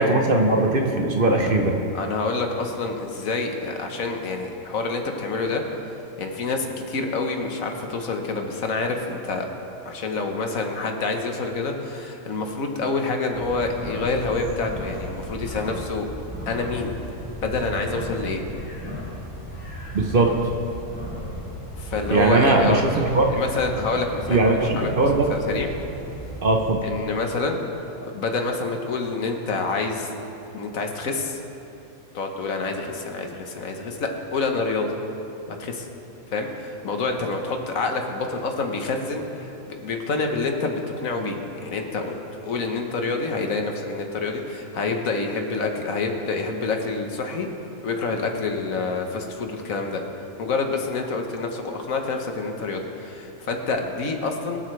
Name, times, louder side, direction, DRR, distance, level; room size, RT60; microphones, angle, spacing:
voice 1, 0.0-1.8 19.9-20.3 22.1-23.3 24.3-25.3 26.4-26.8, right 2 dB, 45° right, 2 dB, 1.0 m, -19 dB
voice 2, 1.9-5.6 6.2-9.5 9.8-16.1 16.5-17.0 17.4-18.4 21.8-22.9 23.3-24.9 25.3-25.7 26.8-27.6 28.0-30.1 30.5-31.4 32.1-34.9 35.5-35.9 36.3-42.1 42.4-47.5 47.8-50.0 50.4-54.6, left 3 dB, 75° left, 3 dB, 1.5 m, -27 dB
sound 1, 13.3-26.7, equal, 30° left, 2.7 m, -35 dB
23.5 x 7.9 x 3.3 m, 3.0 s
omnidirectional pair, 1.4 m